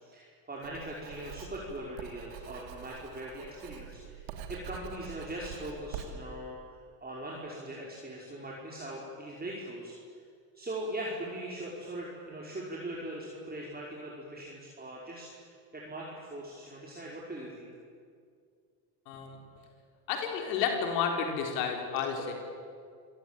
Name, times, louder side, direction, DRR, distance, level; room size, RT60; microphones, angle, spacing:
voice 1, 0.0-9.9 10.5-17.7 22.0-22.1, right 1 dB, 20° right, -4 dB, 5.3 m, -41 dB
Writing, 0.6-6.1, right 8 dB, 85° right, 2.9 m, -45 dB
voice 2, 19.1-19.4 20.1-22.3, left 6 dB, 80° left, 3 dB, 4.3 m, -31 dB
27.0 x 18.0 x 9.1 m, 2.2 s
supercardioid pair, 85°, 49 cm